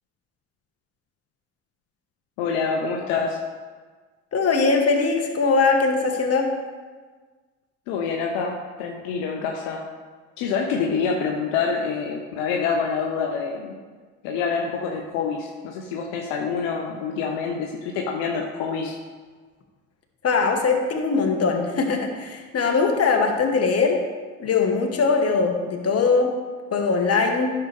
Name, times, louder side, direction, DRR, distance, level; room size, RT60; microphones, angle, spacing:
voice 1, 2.4-3.4 7.9-9.8 10.4-13.7 14.2-19.0, left 5 dB, 75° left, 1 dB, 1.0 m, -26 dB
voice 2, 4.3-6.5 20.2-24.0 24.4-26.3 26.7-27.5, left 4 dB, 40° left, 2 dB, 1.7 m, -21 dB
10.5 x 6.9 x 3.5 m, 1.4 s
hypercardioid pair, 70°, 36 cm